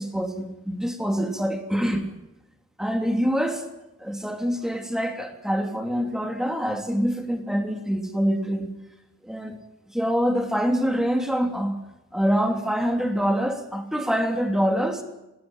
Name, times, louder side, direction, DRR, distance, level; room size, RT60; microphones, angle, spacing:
voice 1, 0.0-2.1 2.8-3.6 4.0-8.7 9.2-9.6 9.9-11.7 12.1-15.0, equal, 5° right, 5 dB, 3.0 m, -25 dB
20.0 x 19.0 x 9.1 m, 0.94 s
head